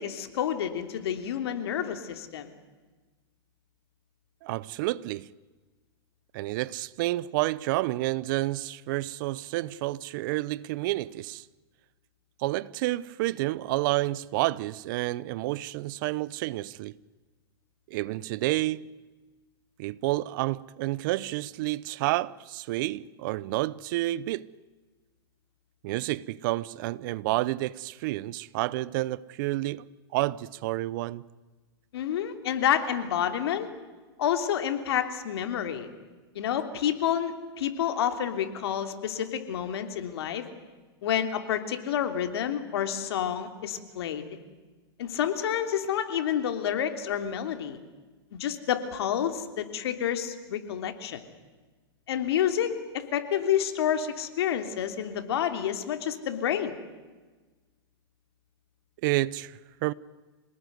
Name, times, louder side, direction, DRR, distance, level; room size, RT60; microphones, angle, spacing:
voice 1, 0.0-2.5 31.9-33.7 34.2-35.9 36.3-40.5 41.0-44.2 45.0-47.8 48.3-51.2 52.1-56.7, left 9 dB, 70° left, 3.1 m, -29 dB
voice 2, 4.4-5.3 6.3-11.4 12.4-16.9 17.9-18.9 19.8-24.5 25.8-29.8 30.1-31.2 59.0-59.9, right 18 dB, 50° right, 0.8 m, -29 dB
26.5 x 19.5 x 9.5 m
hypercardioid pair, 140°, 14 cm